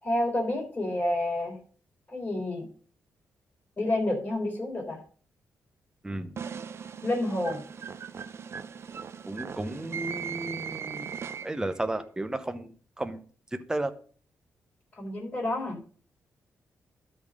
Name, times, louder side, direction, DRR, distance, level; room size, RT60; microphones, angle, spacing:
voice 1, 0.0-1.6 2.1-2.7 3.8-5.0 7.0-7.6 15.0-15.8, left 1 dB, 30° left, -1 dB, 3.5 m, -29 dB
voice 2, 6.0-6.4 9.2-11.1 11.4-12.7 13.0-13.2 13.5-13.9, right 2 dB, 10° right, 9 dB, 0.8 m, -33 dB
sound 1, 6.4-11.8, right 7 dB, 50° right, 0.5 m, -39 dB
12.5 x 4.1 x 6.3 m, 0.43 s
cardioid pair, 100°, 5 cm